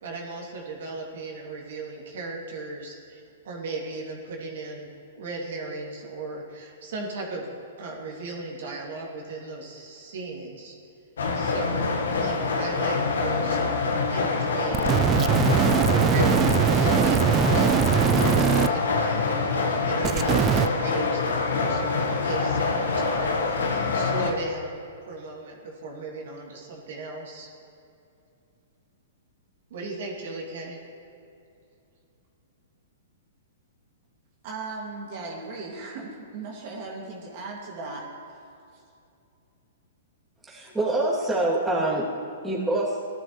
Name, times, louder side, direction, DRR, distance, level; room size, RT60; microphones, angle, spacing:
voice 1, 0.0-4.9 5.1-7.5 7.8-10.7 11.3-13.6 14.1-15.0 15.7-27.5 29.7-30.8, right 2 dB, 65° right, -2 dB, 2.8 m, -36 dB
sound 1, 11.2-24.3, left 4 dB, 80° left, 1.5 m, -25 dB
sound 2, 14.7-18.7 20.0-20.7, right 9 dB, 25° right, 0.4 m, -22 dB
voice 2, 34.4-38.4, right 3 dB, 50° right, -2 dB, 2.4 m, -37 dB
voice 3, 40.4-42.1 42.4-43.0, right 2 dB, 10° right, -6 dB, 2.8 m, -25 dB
18.5 x 12.5 x 3.3 m, 2.6 s
hypercardioid pair, 125°, 0 cm